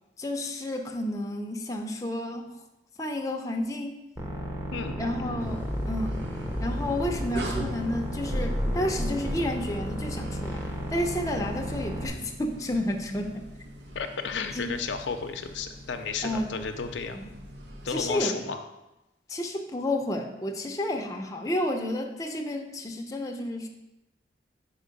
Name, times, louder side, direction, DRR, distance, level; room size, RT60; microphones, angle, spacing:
voice 1, 0.2-2.5 3.0-4.0 5.0-6.2 6.6-13.5 14.5-14.7 16.2-16.5 17.1-17.3 17.9-18.4 19.3-23.7, left 1 dB, 20° left, 2 dB, 0.6 m, -31 dB
sound 1, 4.2-12.1, equal, 15° right, 0.8 m, -32 dB
voice 2, 4.7-5.5 13.9-17.2 17.8-18.6, left 5 dB, 90° left, 6 dB, 0.5 m, -33 dB
sound 2, 5.4-18.2, right 1 dB, 75° right, 0.8 m, -43 dB
5.0 x 4.6 x 5.2 m, 0.95 s
head